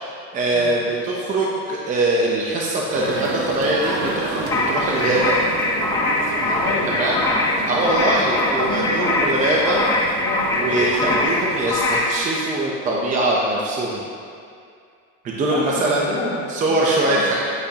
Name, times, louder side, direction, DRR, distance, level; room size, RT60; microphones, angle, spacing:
voice 1, 0.0-5.4 6.9-7.2 7.7-9.9 10.5-14.1 15.2-16.1 16.5-17.4, right 2 dB, 20° right, -3 dB, 0.7 m, -22 dB
sound 1, 2.9-11.7, right 2 dB, 80° right, 1.7 m, -30 dB
sound 2, 4.5-12.2, left 2 dB, 10° left, 0.7 m, -22 dB
voice 2, 6.5-6.9 7.4-8.1 8.4-9.2 10.2-10.5 15.5-17.3, left 3 dB, 55° left, -4 dB, 2.0 m, -31 dB
10.5 x 8.5 x 2.9 m, 2.3 s
cardioid pair, 170°, 34 cm